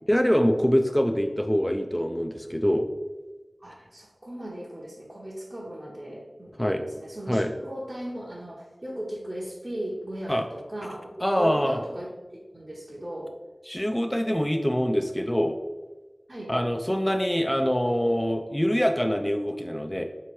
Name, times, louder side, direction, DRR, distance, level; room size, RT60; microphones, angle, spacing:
voice 1, 0.1-2.9 6.6-6.8 7.3-7.5 10.3-10.4 11.2-11.8 13.7-15.6 16.5-20.0, equal, 10° left, 4 dB, 0.3 m, -24 dB
voice 2, 3.6-11.1 11.4-12.1 12.5-13.3 16.3-16.5, right 1 dB, 35° right, -5 dB, 0.8 m, -37 dB
3.3 x 3.0 x 4.4 m, 1.2 s
wide cardioid pair, 45°, 0 cm